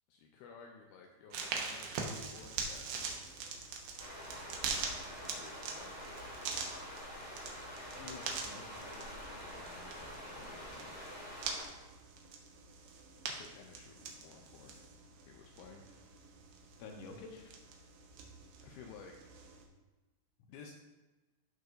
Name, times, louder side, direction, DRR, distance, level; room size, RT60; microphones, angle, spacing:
voice 1, 0.1-3.2 4.5-6.0 13.3-14.8 15.2-15.9 18.6-19.2 20.5-20.7, left 5 dB, 85° left, 1 dB, 2.2 m, -55 dB
sound 1, 1.3-19.7, right 5 dB, 75° right, 2.5 m, -44 dB
sound 2, 4.0-11.6, equal, 15° left, 1.4 m, -47 dB
voice 2, 8.0-10.9 16.8-17.5, left 4 dB, 70° left, 1 dB, 2.1 m, -52 dB
14.0 x 4.8 x 2.6 m, 1.2 s
omnidirectional pair, 4.9 m